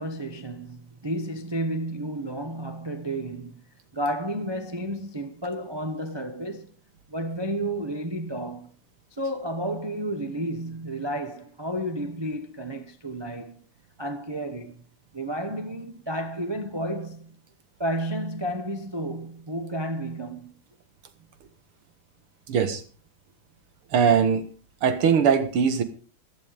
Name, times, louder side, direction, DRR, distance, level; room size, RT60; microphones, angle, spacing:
voice 1, 0.0-3.6 3.9-6.7 7.1-8.7 9.1-13.6 14.0-14.8 15.1-17.4 17.8-20.5, right 1 dB, 30° right, 0.5 m, -31 dB
voice 2, 22.5-22.8 23.9-24.5 24.8-25.8, right 7 dB, 85° right, 2.4 m, -21 dB
15.0 x 11.0 x 5.1 m
omnidirectional pair, 2.3 m